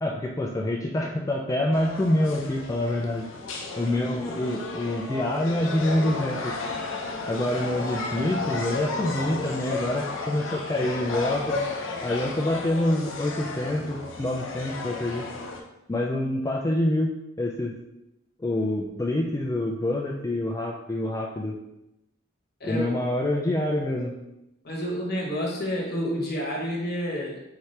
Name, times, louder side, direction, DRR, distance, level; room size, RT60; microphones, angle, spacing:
voice 1, 0.0-3.3 3.8-6.5 7.3-11.6 12.0-15.3 15.9-17.7 18.4-21.6 22.6-24.1, left 1 dB, 15° left, -1 dB, 0.3 m, -26 dB
sound 1, 1.7-15.6, left 3 dB, 80° left, 0.7 m, -33 dB
voice 2, 24.6-27.4, equal, 50° left, -3 dB, 1.0 m, -29 dB
5.8 x 2.8 x 3.2 m, 0.88 s
head